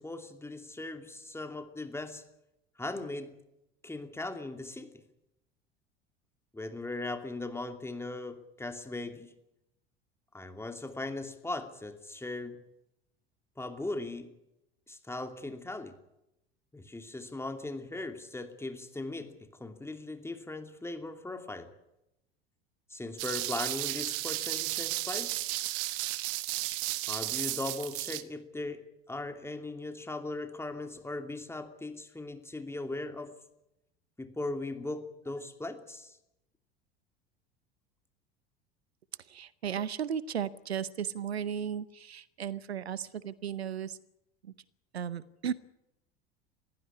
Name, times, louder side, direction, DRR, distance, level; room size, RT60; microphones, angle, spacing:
voice 1, 0.0-2.2 2.8-3.4 3.8-5.0 6.5-9.3 10.3-12.6 13.6-14.3 14.9-16.0 16.7-21.7 22.9-25.3 27.1-33.3 34.2-36.2, left 2 dB, 10° left, 7 dB, 2.7 m, -39 dB
sound 1, 23.2-28.2, right 18 dB, 60° right, 1.4 m, -33 dB
voice 2, 39.3-44.0 44.4-44.5 44.9-45.5, right 8 dB, 80° right, 19 dB, 0.8 m, -35 dB
22.0 x 15.5 x 9.8 m, 0.88 s
figure-of-eight pair, 70°, 31 cm